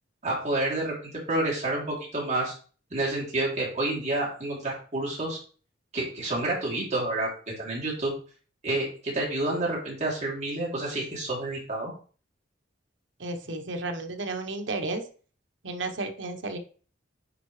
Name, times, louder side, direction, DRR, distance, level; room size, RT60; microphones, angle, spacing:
voice 1, 0.2-2.5 2.9-5.4 5.9-8.1 8.6-11.9, right 2 dB, 35° right, -4 dB, 3.0 m, -29 dB
voice 2, 13.2-15.0 15.6-16.6, right 2 dB, 70° right, 5 dB, 1.1 m, -32 dB
9.1 x 4.7 x 3.2 m, 0.40 s
head